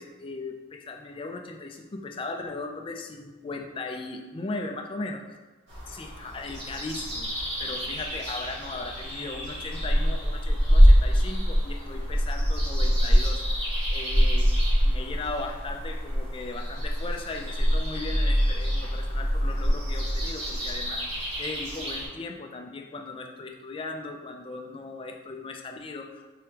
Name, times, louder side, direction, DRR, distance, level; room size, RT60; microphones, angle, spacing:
voice 1, 0.0-5.4 5.9-7.3 7.6-13.4 13.9-14.5 14.8-21.1 21.4-26.3, left 3 dB, 25° left, 3 dB, 0.3 m, -37 dB
sound 1, 5.7-22.1, equal, 70° right, 1.4 m, -25 dB
4.6 x 3.4 x 2.9 m, 1.2 s
head